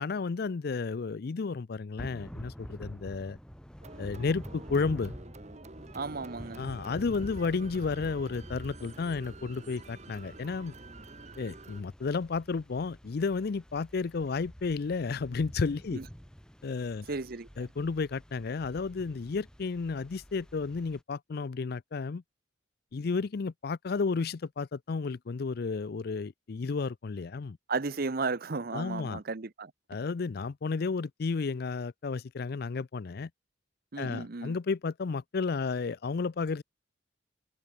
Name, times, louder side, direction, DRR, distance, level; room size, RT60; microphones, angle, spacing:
voice 1, 0.0-3.4 4.0-5.1 6.6-10.7 11.4-16.0 16.6-17.1 17.6-22.2 22.9-27.6 28.7-29.2 29.9-33.3 34.0-36.6, left 4 dB, 55° left, 0.5 m, -32 dB
Thunder / Rain, 2.0-21.0, equal, 5° left, 2.0 m, -48 dB
sound 1, 3.8-11.8, right 3 dB, 40° right, 1.5 m, -49 dB
voice 2, 5.9-6.7 15.9-16.1 17.1-17.5 27.7-29.7 33.9-34.6, right 4 dB, 55° right, 0.9 m, -34 dB
head